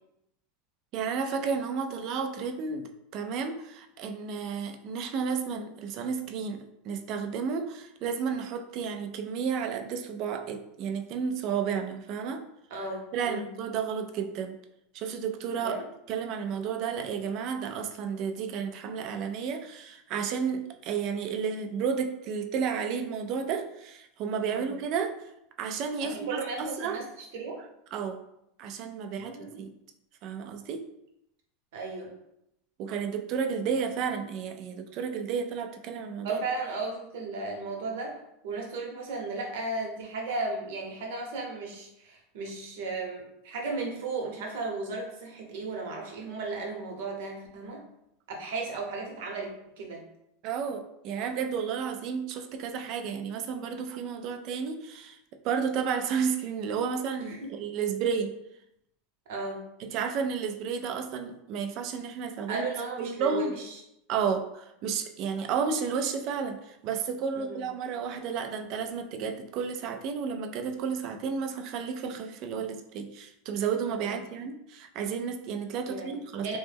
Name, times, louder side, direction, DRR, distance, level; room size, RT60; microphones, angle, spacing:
voice 1, 0.9-12.4 13.1-14.6 14.9-15.8 16.1-25.2 25.6-27.0 27.9-28.2 28.6-29.7 30.2-30.8 32.8-36.4 50.4-55.2 55.4-58.3 59.8-62.7 63.0-63.5 64.1-76.5, right 6 dB, 45° right, 6 dB, 0.4 m, -32 dB
voice 2, 12.7-13.5 15.5-15.8 24.5-24.7 26.0-27.6 29.0-29.7 31.7-32.1 36.2-38.2 38.4-47.8 48.3-50.0 57.2-57.6 59.3-59.6 62.5-63.7 67.3-67.6 74.0-74.2 75.9-76.2 76.4-76.6, right 3 dB, 70° right, 0 dB, 0.9 m, -35 dB
3.0 x 2.1 x 3.4 m, 0.80 s
supercardioid pair, 140°, 0 cm